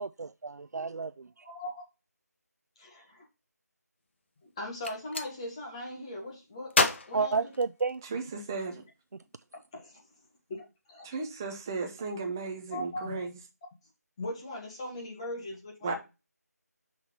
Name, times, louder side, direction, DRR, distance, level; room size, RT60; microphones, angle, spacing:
voice 1, 0.0-1.3 7.1-8.0, right 4 dB, 75° right, 0.4 m, -31 dB
voice 2, 1.4-1.8 2.8-3.2 4.4-6.7 7.1-7.3 9.7-10.0 10.5-11.1 12.7-13.2 14.2-16.0, left 1 dB, 20° left, 1.7 m, -39 dB
Gunshot gunfire, 4.6-5.3 6.7-8.2, left 3 dB, 40° left, 0.8 m, -29 dB
voice 3, 8.1-8.8 11.0-13.4 15.8-15.9, right 4 dB, 10° right, 0.7 m, -35 dB
6.0 x 4.4 x 5.3 m
figure-of-eight pair, 170°, 9 cm